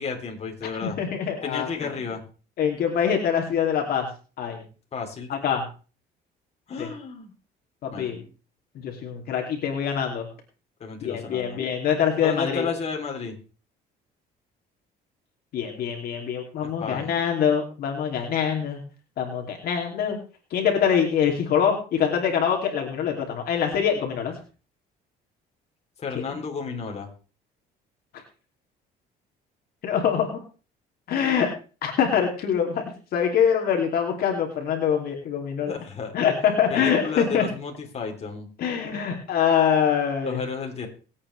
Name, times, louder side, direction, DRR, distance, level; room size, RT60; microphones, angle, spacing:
voice 1, 0.0-1.0 1.4-2.2 4.9-5.3 6.7-7.3 7.9-8.2 10.8-11.6 12.2-13.4 16.6-17.2 26.0-27.1 35.6-36.1 36.7-38.5 40.2-40.9, left 5 dB, 40° left, 2 dB, 3.3 m, -32 dB
voice 2, 0.8-1.9 2.6-4.1 4.4-4.6 5.3-5.6 6.8-6.9 7.8-8.2 8.7-10.3 11.0-12.6 15.5-18.8 19.2-20.2 20.5-24.3 29.8-30.4 31.1-31.5 31.8-32.8 33.1-35.7 36.1-37.4 38.6-40.4, left 8 dB, 65° left, 2 dB, 2.7 m, -24 dB
23.0 x 8.7 x 3.3 m, 0.36 s
cardioid pair, 110°, 17 cm